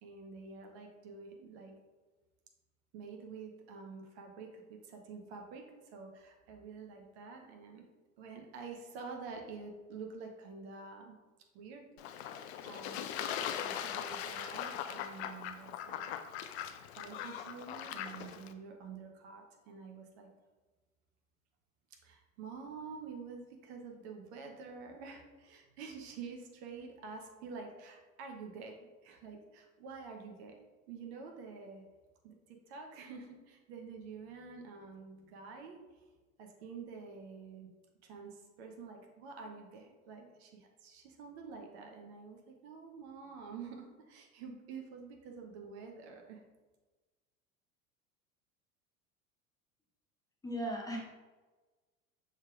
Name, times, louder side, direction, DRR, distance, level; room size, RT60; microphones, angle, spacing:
voice 1, 0.0-1.7 2.9-7.9 8.2-11.2 11.5-11.9 12.3-16.0 17.0-20.3 22.0-28.8 29.0-30.6 30.9-31.8 32.2-35.8 36.4-37.7 38.0-46.4, right 5 dB, 50° right, 2 dB, 0.8 m, -48 dB
Fowl / Bird / Water, 12.0-18.5, left 9 dB, 50° left, 0.4 m, -40 dB
voice 2, 50.4-51.0, equal, 10° left, -3 dB, 0.6 m, -36 dB
6.4 x 3.4 x 2.4 m, 1.3 s
figure-of-eight pair, 75°, 42 cm